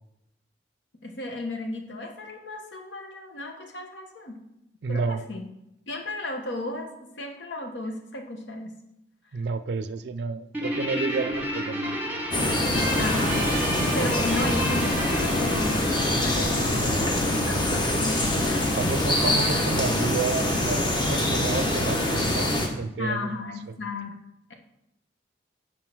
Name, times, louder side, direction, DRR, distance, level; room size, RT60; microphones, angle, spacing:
voice 1, 1.0-4.4 4.9-5.5 5.9-6.9 7.2-8.7 13.0-13.6 13.9-18.7 23.0-24.1, left 2 dB, 85° left, 3 dB, 1.1 m, -34 dB
voice 2, 4.8-5.2 9.3-12.0 16.7-17.1 18.7-23.4 23.7-23.8, right 4 dB, 65° right, 12 dB, 0.4 m, -31 dB
Guitar, 10.5-17.2, equal, 10° right, 1.0 m, -32 dB
sound 1, 12.3-22.7, left 1 dB, 25° left, 0.8 m, -24 dB
6.2 x 3.7 x 6.0 m, 0.86 s
head